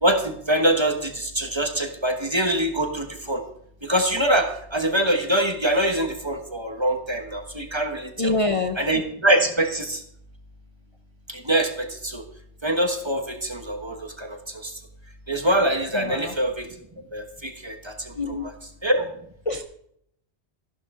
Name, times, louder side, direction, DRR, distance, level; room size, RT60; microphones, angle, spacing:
voice 1, 0.0-3.4 3.8-8.3 8.8-10.0 11.3-12.2 12.6-14.7 15.3-16.7 17.1-18.1 18.4-18.5 18.8-19.0, right 1 dB, 25° right, 5 dB, 1.2 m, -24 dB
voice 2, 8.2-8.8 15.9-16.3 18.2-18.5 19.5-19.6, left 2 dB, 35° left, 5 dB, 0.7 m, -25 dB
14.0 x 11.5 x 3.7 m, 0.70 s
omnidirectional pair, 1.2 m